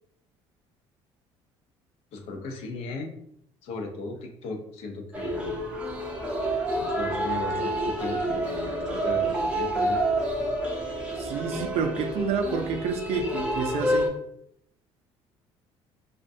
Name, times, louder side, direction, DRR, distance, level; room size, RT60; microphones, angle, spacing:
voice 1, 2.1-3.1 3.6-5.6 6.8-10.0, left 3 dB, 75° left, 3 dB, 0.5 m, -36 dB
sound 1, 5.1-14.1, right 1 dB, 10° right, 0.4 m, -28 dB
voice 2, 11.2-14.1, right 6 dB, 70° right, 5 dB, 0.4 m, -29 dB
2.3 x 2.1 x 2.6 m, 0.71 s
cardioid pair, 125°, 11 cm